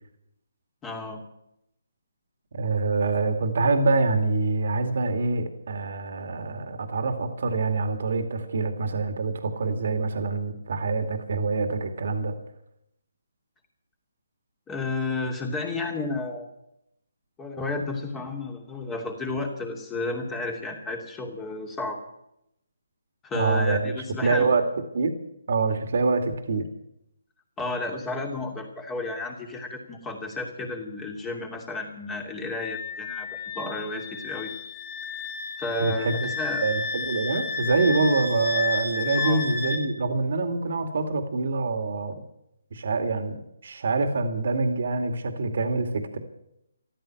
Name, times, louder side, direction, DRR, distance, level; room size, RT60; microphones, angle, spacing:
voice 1, 0.8-1.2 14.7-16.5 17.4-22.0 23.2-24.5 27.6-34.5 35.6-36.6 39.2-39.4, left 3 dB, 15° left, 2 dB, 2.7 m, -32 dB
voice 2, 2.5-12.3 23.3-24.0 24.2-24.6 24.9-25.2 25.5-26.7 35.8-36.3 36.6-42.2 42.7-46.2, right 3 dB, 60° right, 7 dB, 2.3 m, -25 dB
Wind instrument woodwind instrument, 32.6-39.8, left 4 dB, 40° left, 4.0 m, -32 dB
14.0 x 13.0 x 7.8 m, 0.81 s
figure-of-eight pair, 150°, 0 cm